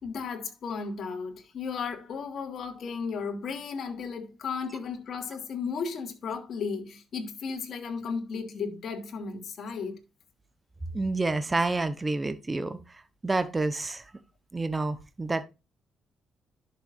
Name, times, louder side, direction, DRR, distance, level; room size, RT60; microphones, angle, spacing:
voice 1, 0.0-10.0, left 5 dB, 60° left, 2.9 m, -34 dB
voice 2, 10.9-12.8 13.2-14.0 14.5-15.4, right 3 dB, 20° right, 1.1 m, -28 dB
11.0 x 6.8 x 2.6 m
cardioid pair, 90°, 0 cm